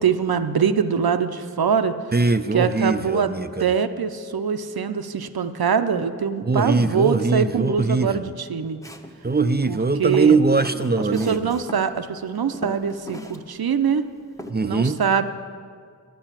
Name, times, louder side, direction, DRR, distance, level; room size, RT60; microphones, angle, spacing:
voice 1, 0.0-2.0 2.5-3.3 3.6-8.8 9.7-10.4 11.0-14.0 14.6-15.2, right 7 dB, 90° right, 10 dB, 0.6 m, -23 dB
voice 2, 2.1-3.7 6.5-8.3 9.2-11.5 14.5-15.0, right 3 dB, 30° right, 11 dB, 0.4 m, -21 dB
Walk footsteps, 8.8-9.2 9.9-11.8 12.2-12.3 12.5-13.4 13.7-13.8 14.4-14.5, equal, 10° left, 0.8 m, -37 dB
10.0 x 9.7 x 7.3 m, 2.1 s
wide cardioid pair, 50°, 36 cm